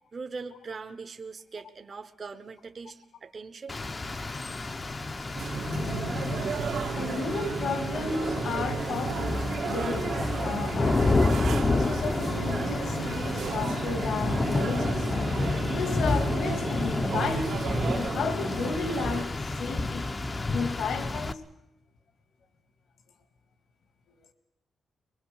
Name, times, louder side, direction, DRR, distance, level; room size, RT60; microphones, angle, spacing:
voice 1, 0.1-3.7, right 4 dB, 35° right, 7 dB, 1.1 m, -41 dB
Rain, 3.7-21.3, left 3 dB, 25° left, 0.8 m, -29 dB
sound 1, 5.3-19.2, right 7 dB, 65° right, 1.6 m, -34 dB
voice 2, 6.9-11.4 11.8-15.1 15.7-20.1 20.5-21.4, left 4 dB, 70° left, 8 dB, 1.9 m, -33 dB
23.0 x 22.0 x 6.7 m, 0.86 s
cardioid pair, 135°, 0 cm